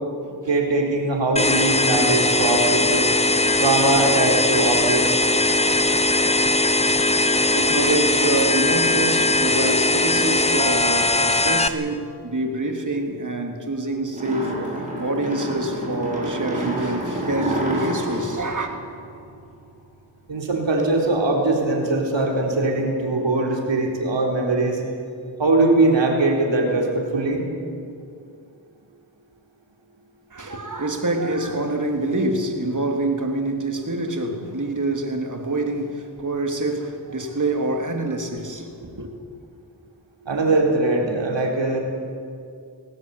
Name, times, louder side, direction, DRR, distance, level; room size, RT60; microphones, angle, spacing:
voice 1, 0.5-3.0 3.6-5.2 20.3-24.8 25.4-27.4 40.3-41.8, right 2 dB, 85° right, 3.9 m, -21 dB
sound 1, 1.4-11.7, left 2 dB, 15° left, 1.1 m, -19 dB
voice 2, 7.5-18.7 30.3-39.1, right 2 dB, 45° right, 3.1 m, -26 dB
sound 2, 14.1-19.5, right 1 dB, 15° right, 6.3 m, -29 dB
20.5 x 18.0 x 8.3 m
cardioid pair, 55°, 43 cm